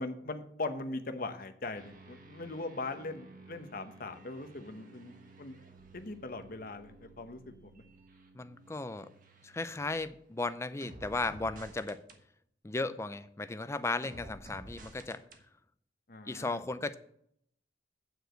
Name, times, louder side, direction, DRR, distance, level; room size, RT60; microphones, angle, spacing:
voice 1, 0.0-5.6 5.9-7.8 16.1-16.6, left 2 dB, 50° left, 9 dB, 0.9 m, -40 dB
sound 1, 1.7-10.3 10.8-12.2 14.0-15.4, right 2 dB, 45° right, 1.3 m, -54 dB
voice 2, 8.3-9.1 9.4-12.0 12.6-15.2 16.3-17.0, left 3 dB, 15° left, 12 dB, 0.4 m, -35 dB
9.1 x 4.8 x 7.7 m, 0.69 s
head